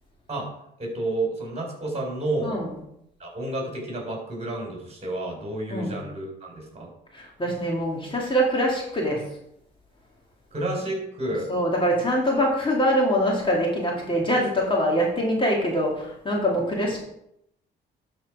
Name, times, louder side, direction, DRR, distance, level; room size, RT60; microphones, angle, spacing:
voice 1, 0.8-2.6 3.2-6.9 10.5-11.5, right 2 dB, 30° right, 0 dB, 4.0 m, -30 dB
voice 2, 7.1-9.2 11.5-17.0, equal, 25° left, -2 dB, 2.3 m, -24 dB
12.0 x 4.4 x 4.8 m, 0.77 s
cardioid pair, 90°, 20 cm